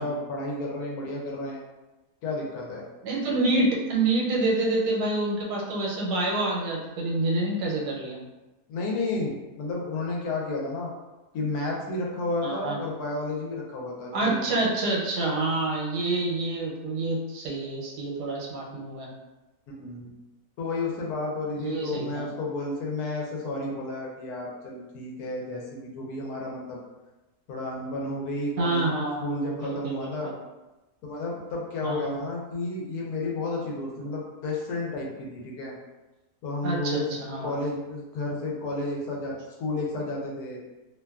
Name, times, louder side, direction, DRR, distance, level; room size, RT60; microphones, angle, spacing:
voice 1, 0.0-1.6 2.2-2.9 8.7-10.9 11.3-14.7 19.8-20.1 20.6-26.8 27.5-28.8 29.2-30.3 31.0-35.7 36.4-37.2 37.4-40.6, left 2 dB, 75° left, -3 dB, 1.1 m, -32 dB
voice 2, 3.0-8.2 12.4-12.8 14.1-19.1 21.5-22.3 28.6-30.3 31.8-32.2 36.6-37.5, right 2 dB, 85° right, -2 dB, 1.2 m, -27 dB
2.8 x 2.2 x 2.3 m, 1.1 s
omnidirectional pair, 1.7 m